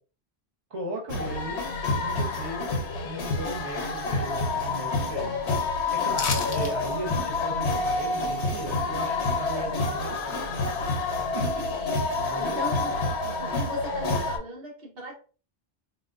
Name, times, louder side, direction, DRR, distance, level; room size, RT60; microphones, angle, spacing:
voice 1, 0.7-1.6 2.0-2.8 3.0-5.4 5.9-10.5 11.3-11.7 12.2-12.6, right 2 dB, 35° right, -1 dB, 0.8 m, -37 dB
sound 1, 1.1-14.4, left 3 dB, 85° left, 1.0 m, -28 dB
sound 2, 6.1-6.7 7.1-7.2, left 4 dB, 60° left, 0.8 m, -30 dB
voice 2, 12.3-12.9 13.2-15.1, right 2 dB, 70° right, -1 dB, 1.2 m, -38 dB
4.0 x 2.2 x 2.4 m, 0.38 s
omnidirectional pair, 1.1 m